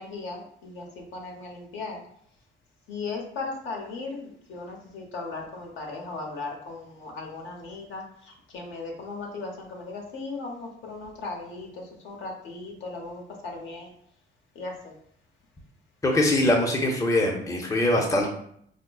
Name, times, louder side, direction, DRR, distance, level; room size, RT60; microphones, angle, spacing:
voice 1, 0.0-2.0 2.9-13.9 14.5-15.0, left 3 dB, 70° left, 1 dB, 1.0 m, -37 dB
voice 2, 16.0-18.3, left 1 dB, 15° left, 1 dB, 0.6 m, -22 dB
4.9 x 2.0 x 2.3 m, 0.67 s
cardioid pair, 90°, 20 cm